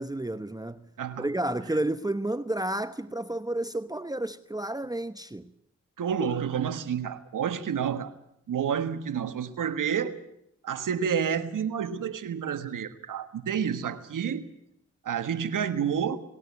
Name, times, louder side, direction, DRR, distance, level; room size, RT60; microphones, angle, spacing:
voice 1, 0.0-0.9 1.2-5.5, right 1 dB, 10° right, 1.0 m, -31 dB
voice 2, 6.0-8.1 8.5-10.2 10.6-14.4 15.0-16.2, right 7 dB, 80° right, 1.5 m, -29 dB
20.0 x 18.0 x 8.3 m
supercardioid pair, 40°, 31 cm